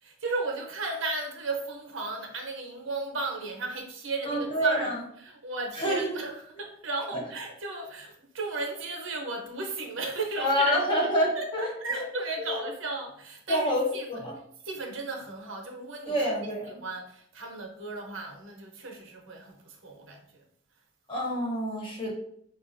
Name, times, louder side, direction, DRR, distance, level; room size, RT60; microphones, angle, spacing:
voice 1, 0.0-11.1 11.4-14.3 14.6-16.3 16.7-20.4, right 3 dB, 60° right, 2 dB, 0.7 m, -35 dB
voice 2, 4.3-5.0 5.7-6.2 10.4-12.0 12.4-12.6 13.5-14.4 16.1-16.8 21.1-22.1, equal, 25° left, -4 dB, 1.0 m, -27 dB
4.5 x 2.5 x 2.5 m, 0.66 s
head